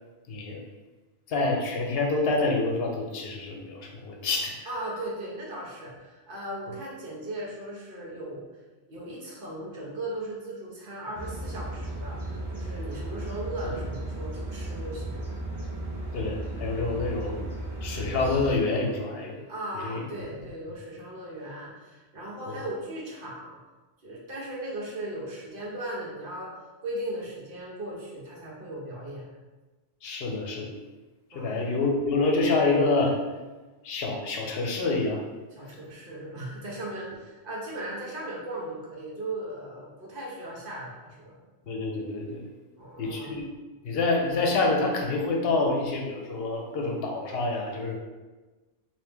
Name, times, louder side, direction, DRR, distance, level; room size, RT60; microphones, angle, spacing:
voice 1, 0.3-0.6 1.3-4.5 16.1-17.4 17.8-19.4 19.7-20.0 22.5-22.6 30.0-30.7 31.3-33.2 33.8-35.2 41.7-42.4 43.0-43.4 43.8-48.0, left 3 dB, 65° left, 1 dB, 0.9 m, -27 dB
voice 2, 4.7-8.4 8.9-12.2 12.5-15.3 19.5-23.6 24.0-26.6 26.8-29.3 31.3-31.5 35.5-41.4 42.8-43.4, right 1 dB, 55° right, -5 dB, 1.0 m, -37 dB
sound 1, 11.1-18.6, right 1 dB, 30° right, 0.5 m, -35 dB
3.0 x 2.8 x 3.4 m, 1.2 s
omnidirectional pair, 1.2 m